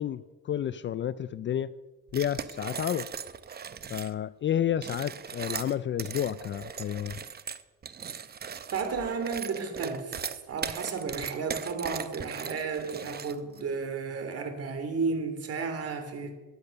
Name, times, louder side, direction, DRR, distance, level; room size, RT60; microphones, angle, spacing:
voice 1, 0.0-1.7 2.1-3.1 3.9-7.2, left 10 dB, 35° left, 17 dB, 0.4 m, -30 dB
sound 1, 2.1-4.1 4.7-13.6, right 7 dB, 30° right, 0.8 m, -38 dB
voice 2, 8.7-16.3, right 5 dB, 45° right, 6 dB, 3.2 m, -33 dB
15.0 x 10.5 x 6.6 m, 1.2 s
cardioid pair, 115°, 33 cm